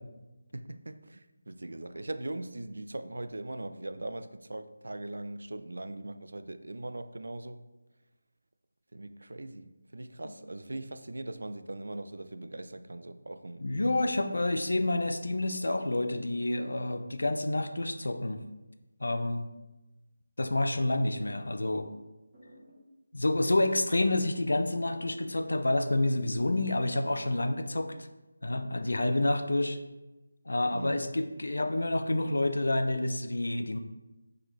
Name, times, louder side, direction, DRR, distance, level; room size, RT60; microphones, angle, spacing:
voice 1, 0.5-7.6 8.9-13.7 30.7-31.0, right 2 dB, 85° right, 10 dB, 0.3 m, -40 dB
voice 2, 13.6-18.4 19.0-19.5 20.4-21.9 23.1-27.9 28.4-29.8 30.5-33.8, left 2 dB, 90° left, 8 dB, 0.4 m, -28 dB
sound 1, 20.9-21.9 22.3-22.9 23.7-24.3 24.6-25.7 26.0-26.6 27.4-27.9, equal, 15° right, 1.0 m, -55 dB
3.8 x 3.3 x 3.0 m, 1.1 s
figure-of-eight pair, 180°, 0 cm